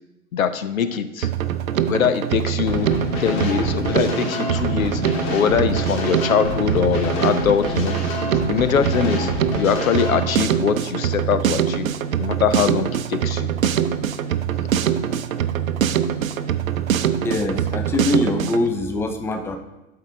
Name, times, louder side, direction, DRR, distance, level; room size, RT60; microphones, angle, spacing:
voice 1, 0.3-1.3 1.9-2.9 3.2-5.0 5.3-8.0 8.4-13.5, left 7 dB, 75° left, 12 dB, 0.6 m, -22 dB
Drum kit, 1.2-18.7, right 9 dB, 75° right, 0.6 m, -23 dB
sound 1, 2.7-10.2, left 2 dB, 45° left, 1.9 m, -27 dB
voice 2, 17.2-19.6, left 2 dB, 5° left, 6 dB, 0.6 m, -23 dB
12.0 x 4.6 x 3.7 m, 0.98 s
figure-of-eight pair, 90°, 41 cm